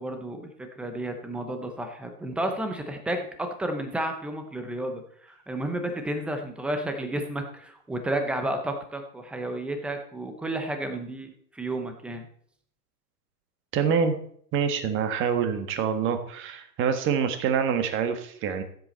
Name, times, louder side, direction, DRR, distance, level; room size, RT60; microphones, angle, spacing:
voice 1, 0.0-12.3, right 1 dB, ahead, 6 dB, 0.5 m, -32 dB
voice 2, 13.7-14.2 14.5-18.6, right 7 dB, 25° right, 8 dB, 1.6 m, -26 dB
15.5 x 7.8 x 4.2 m, 0.63 s
hypercardioid pair, 140°, 50 cm